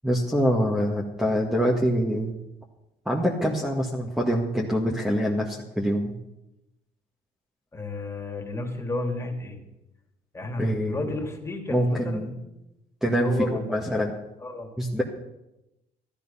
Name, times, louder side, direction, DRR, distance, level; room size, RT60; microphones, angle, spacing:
voice 1, 0.0-2.3 3.1-6.1 10.6-11.0 11.7-12.3 13.0-14.1 14.8-15.0, equal, 5° right, -2 dB, 1.8 m, -25 dB
voice 2, 7.7-9.6 10.3-12.3 13.1-14.0 14.4-14.7, left 2 dB, 15° left, 2 dB, 2.8 m, -32 dB
13.5 x 12.5 x 5.7 m, 0.92 s
cardioid pair, 110°, 17 cm